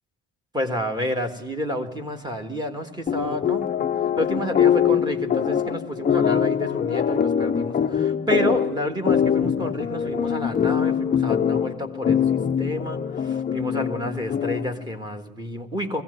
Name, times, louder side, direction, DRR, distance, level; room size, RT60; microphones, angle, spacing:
voice 1, 0.5-3.9 4.2-16.0, equal, 15° right, 4 dB, 1.7 m, -29 dB
sound 1, 3.1-14.8, left 8 dB, 25° left, 0.6 m, -23 dB
21.5 x 16.5 x 7.9 m, 1.1 s
cardioid pair, 165°, 32 cm